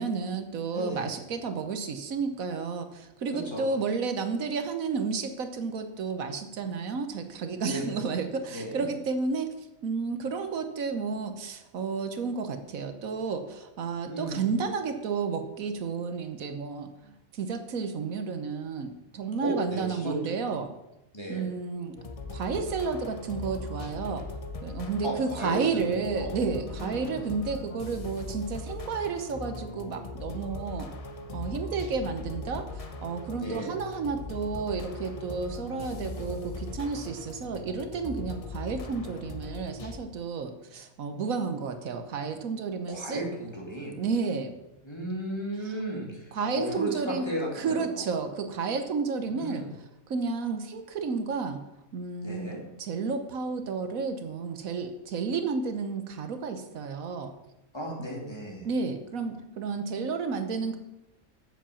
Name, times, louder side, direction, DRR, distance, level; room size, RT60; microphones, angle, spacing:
voice 1, 0.0-9.5 9.8-20.7 21.3-21.9 22.3-24.2 24.6-30.9 31.3-43.2 44.0-44.6 46.3-47.3 47.6-49.6 50.1-51.6 51.9-52.5 52.8-57.3 58.6-60.8, right 5 dB, 80° right, 7 dB, 1.4 m, -31 dB
voice 2, 0.7-1.2 3.4-3.6 7.7-7.8 8.5-8.9 14.0-14.5 19.4-20.5 21.1-21.5 25.0-26.3 26.7-27.2 33.4-33.7 42.9-44.0 44.8-48.0 49.3-49.7 52.2-52.6 57.7-58.7, equal, 20° left, -2 dB, 2.5 m, -35 dB
sound 1, 22.0-40.0, left 3 dB, 35° left, 0.7 m, -39 dB
7.9 x 7.5 x 7.0 m, 0.92 s
omnidirectional pair, 1.4 m